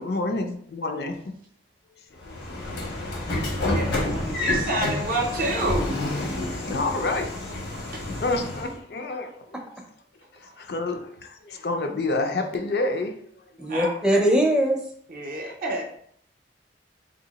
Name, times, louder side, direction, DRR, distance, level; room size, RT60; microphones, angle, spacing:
voice 1, 0.0-1.3 2.1-2.3 3.5-3.8 6.6-9.6 10.4-13.2 13.6-13.7 15.4-15.5, left 2 dB, 60° left, 5 dB, 0.4 m, -29 dB
Train / Sliding door, 2.2-8.8, left 1 dB, 80° left, 1.1 m, -29 dB
voice 2, 3.7-5.9 7.9-8.0 13.7-13.9 15.1-15.8, right 1 dB, 50° right, 2 dB, 0.6 m, -28 dB
voice 3, 13.6-14.8, equal, 5° right, 1 dB, 0.5 m, -21 dB
2.8 x 2.7 x 4.0 m, 0.65 s
head